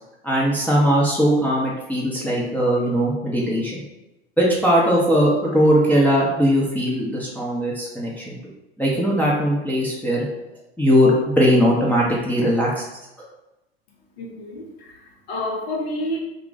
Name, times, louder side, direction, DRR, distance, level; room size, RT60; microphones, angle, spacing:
voice 1, 0.2-3.8 4.4-8.4 8.8-10.3 10.8-12.8, equal, 5° left, -6 dB, 0.6 m, -19 dB
voice 2, 13.9-16.2, left 1 dB, 75° left, -1 dB, 0.9 m, -30 dB
2.5 x 2.3 x 3.8 m, 0.99 s
hypercardioid pair, 85°, 30 cm